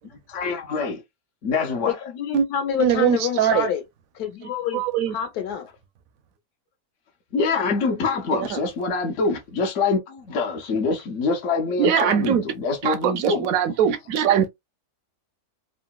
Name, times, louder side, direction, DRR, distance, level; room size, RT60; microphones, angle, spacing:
voice 1, 0.1-1.0 1.4-2.0 7.3-13.5, left 4 dB, 60° left, 1.0 m, -25 dB
voice 2, 1.9-3.8 4.1-4.8 5.1-5.7, left 8 dB, 80° left, 1.3 m, -27 dB
voice 3, 2.8-3.7 4.7-5.2 8.3-8.6 11.8-12.4 12.8-14.5, right 9 dB, 70° right, 0.9 m, -21 dB
3.6 x 2.1 x 2.2 m
omnidirectional pair, 1.6 m